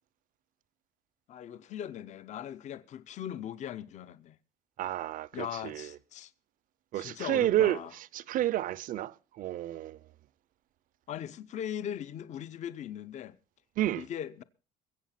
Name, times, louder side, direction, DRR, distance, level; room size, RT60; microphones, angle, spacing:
voice 1, 1.3-4.4 5.3-6.3 6.9-7.9 11.1-13.4 14.0-14.4, left 10 dB, 45° left, 0.8 m, -39 dB
voice 2, 4.8-5.9 6.9-7.8 8.1-10.0 13.8-14.0, right 13 dB, 55° right, 0.7 m, -30 dB
22.5 x 8.1 x 5.8 m
cardioid pair, 150°, 17 cm